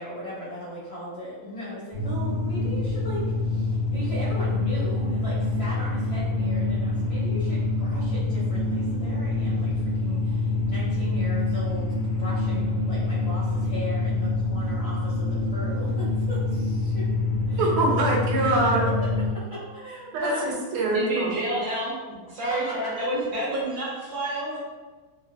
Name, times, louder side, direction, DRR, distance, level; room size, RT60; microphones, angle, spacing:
voice 1, 0.0-17.1 17.5-17.7 18.4-18.6 19.3-20.5 21.6-21.7 22.4-22.6, left 1 dB, 70° left, -9 dB, 0.9 m, -38 dB
sound 1, 1.9-19.3, left 2 dB, 25° right, 0.6 m, -26 dB
voice 2, 17.5-18.8 19.9-21.3, right 2 dB, 85° right, -2 dB, 1.6 m, -24 dB
voice 3, 20.9-21.9 22.3-24.6, right 1 dB, 60° right, -8 dB, 1.1 m, -29 dB
3.7 x 2.2 x 2.3 m, 1.3 s
omnidirectional pair, 2.4 m